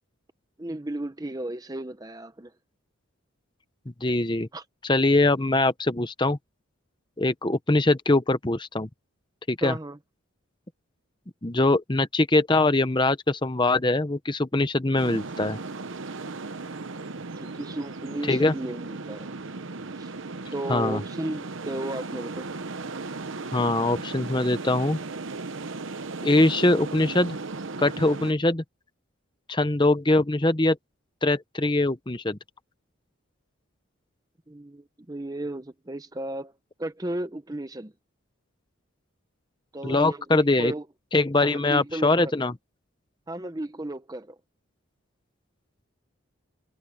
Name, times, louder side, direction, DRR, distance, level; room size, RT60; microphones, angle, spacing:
voice 1, 0.6-2.5 4.5-4.6 9.6-10.0 17.4-19.3 20.0-20.1 20.5-22.5 34.5-36.5 36.8-37.9 39.7-40.9 41.4-42.5 43.3-44.4, right 1 dB, 15° right, 0.7 m, -34 dB
voice 2, 4.0-4.5 4.8-6.4 7.2-8.9 9.5-9.8 11.4-15.6 18.3-18.5 20.7-21.0 23.5-25.0 26.2-27.4 27.8-28.6 29.5-30.8 31.2-32.4 39.8-40.7 41.1-42.5, left 2 dB, 20° left, 0.9 m, -22 dB
sound 1, 15.0-28.3, right 3 dB, 65° right, 1.0 m, -36 dB
head